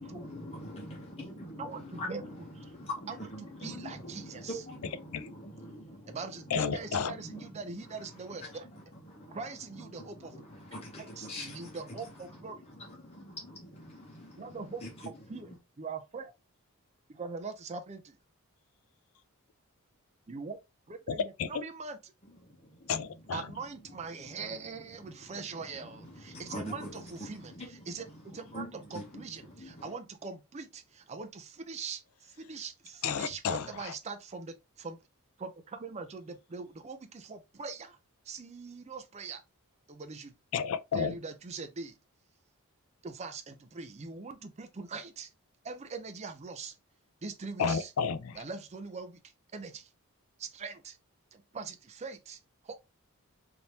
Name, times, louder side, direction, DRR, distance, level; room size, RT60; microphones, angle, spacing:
voice 1, 0.0-2.4 2.7-6.2 6.9-7.9 8.4-9.4 10.0-12.0 12.7-14.9 15.5-15.6 22.4-22.9 24.2-24.5 25.2-25.4 25.7-26.9 27.2-28.0 28.5-29.2 29.6-29.9, left 1 dB, 30° left, 0.9 m, -44 dB
voice 2, 1.6-2.2 2.6-2.7 3.1-4.6 6.1-8.7 9.3-10.4 10.7-12.6 14.4-14.8 15.3-16.3 17.1-18.2 20.3-20.6 20.9-22.1 23.3-35.0 35.4-38.0 38.3-39.4 39.9-40.3 40.9-41.9 43.0-45.3 45.6-46.7 47.2-47.9 48.4-49.2 49.5-49.9 50.4-51.0 51.3-52.4 52.6-52.7, right 4 dB, 30° right, 0.5 m, -42 dB
voice 3, 6.5-7.2 21.1-21.6 22.9-23.5 33.0-33.9 40.5-41.2 47.6-48.4, left 6 dB, 70° left, 0.4 m, -31 dB
3.4 x 2.8 x 2.8 m
head